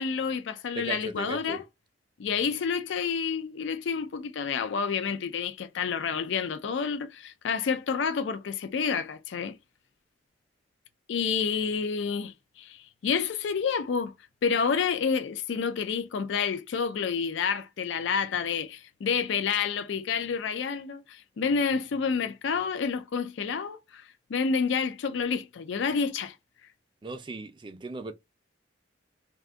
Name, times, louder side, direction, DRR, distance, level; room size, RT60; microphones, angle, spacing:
voice 1, 0.0-1.6 2.2-9.6 11.1-14.1 14.4-26.3, left 6 dB, 75° left, 0.4 m, -29 dB
voice 2, 0.8-1.6 27.0-28.1, right 3 dB, 25° right, 0.4 m, -37 dB
2.5 x 2.3 x 3.5 m
head